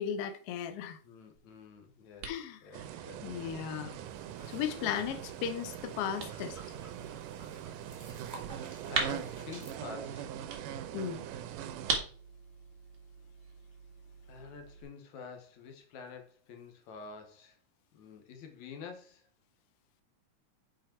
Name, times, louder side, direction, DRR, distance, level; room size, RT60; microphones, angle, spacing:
voice 1, 0.0-1.0 2.2-2.6 3.2-3.9 4.5-6.6 10.9-11.3, left 8 dB, 90° left, 1.3 m, -36 dB
voice 2, 1.0-2.3 2.6-3.6 8.9-10.4 14.2-17.6 17.9-19.3, left 5 dB, 70° left, 2.4 m, -48 dB
sound 1, 1.3-14.8, right 5 dB, 60° right, 2.7 m, -42 dB
sound 2, 2.7-12.0, right 10 dB, 90° right, 2.3 m, -42 dB
sound 3, 4.0-9.7, right 1 dB, 10° right, 1.2 m, -54 dB
7.7 x 5.1 x 4.4 m
omnidirectional pair, 3.7 m